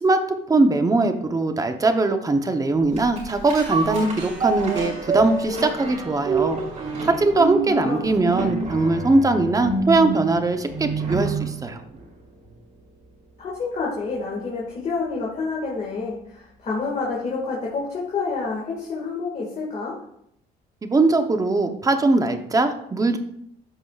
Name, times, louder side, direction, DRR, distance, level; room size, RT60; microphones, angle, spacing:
voice 1, 0.0-6.6 7.0-11.8 20.8-23.2, right 3 dB, 20° right, 7 dB, 0.8 m, -21 dB
sound 1, 2.9-11.5 11.9-12.0, right 3 dB, 45° right, 3.3 m, -27 dB
voice 2, 7.6-8.1 13.4-20.0, left 4 dB, 40° left, -4 dB, 1.9 m, -28 dB
13.0 x 4.9 x 2.4 m, 0.73 s
cardioid pair, 110°, 17 cm